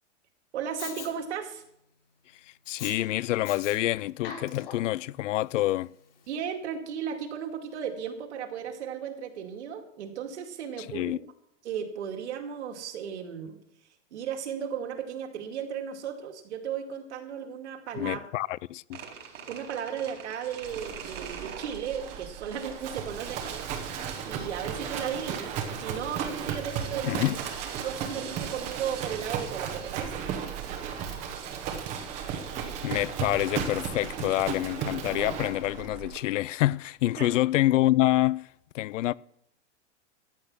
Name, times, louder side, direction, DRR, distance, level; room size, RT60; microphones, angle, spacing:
voice 1, 0.5-1.6 6.3-11.1 11.6-13.6 14.1-18.2 19.5-23.6 24.3-27.2 27.8-30.3 37.2-37.3, right 8 dB, 65° right, 2.3 m, -35 dB
Respiratory sounds, 0.8-1.1 2.6-2.9 3.4-3.8 4.1-4.9 5.6-5.7, left 7 dB, 50° left, 3.4 m, -40 dB
voice 2, 2.7-5.9 10.9-11.2 18.0-19.0 27.0-27.4 32.8-38.5 38.7-39.1, left 16 dB, 80° left, 0.5 m, -27 dB
sound 1, 18.9-34.3, right 7 dB, 85° right, 4.1 m, -46 dB
Livestock farm animals working animals, 20.6-36.2, right 7 dB, 20° right, 1.0 m, -35 dB
14.0 x 8.7 x 6.2 m
supercardioid pair, 180°, 37 cm